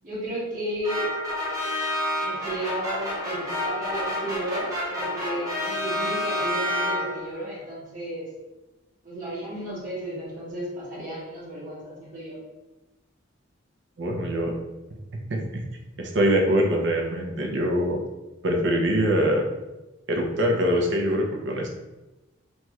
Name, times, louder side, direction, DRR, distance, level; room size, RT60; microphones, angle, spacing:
voice 1, 0.0-1.1 2.2-8.3 9.0-12.4, right 1 dB, 45° right, -10 dB, 1.4 m, -33 dB
sound 1, 0.8-7.4, left 1 dB, 20° right, 0.7 m, -29 dB
voice 2, 14.0-14.5 15.3-15.4 16.0-18.0 18.4-19.4 20.1-21.7, equal, 65° right, 1 dB, 0.5 m, -23 dB
3.1 x 2.9 x 2.3 m, 1.1 s
head